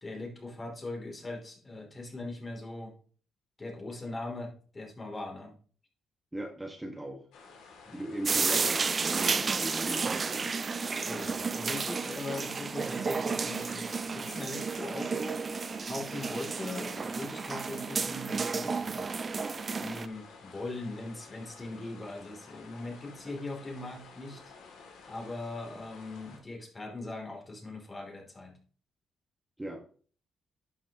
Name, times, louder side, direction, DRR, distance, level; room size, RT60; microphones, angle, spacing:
voice 1, 0.0-2.9 3.6-5.5 7.8-8.0 11.0-15.4 15.8-19.1 19.7-24.4 25.1-28.5, left 2 dB, 25° left, 1 dB, 3.0 m, -40 dB
voice 2, 6.3-7.2 7.9-10.6 29.6-29.8, right 1 dB, 10° right, 2 dB, 1.5 m, -39 dB
sound 1, 7.3-26.4, left 4 dB, 85° left, 2.5 m, -52 dB
sound 2, 8.3-20.1, right 5 dB, 35° right, 0.3 m, -32 dB
11.0 x 6.3 x 2.9 m, 0.42 s
cardioid pair, 90°, 0 cm